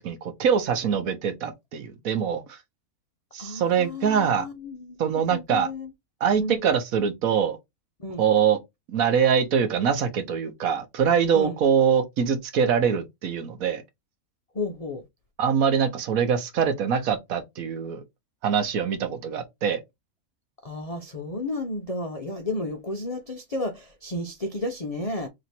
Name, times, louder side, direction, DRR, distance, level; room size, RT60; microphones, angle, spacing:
voice 1, 0.0-2.4 3.3-4.5 5.0-5.7 6.2-7.6 8.2-8.6 8.9-13.8 15.4-18.0 18.4-19.8, right 7 dB, 70° right, 1.2 m, -23 dB
voice 2, 3.4-5.0 5.3-5.9 6.4-6.6 8.0-8.2 11.3-11.6 14.5-15.0 20.6-25.3, left 2 dB, 55° left, 0.4 m, -32 dB
3.3 x 2.8 x 4.1 m
omnidirectional pair, 1.6 m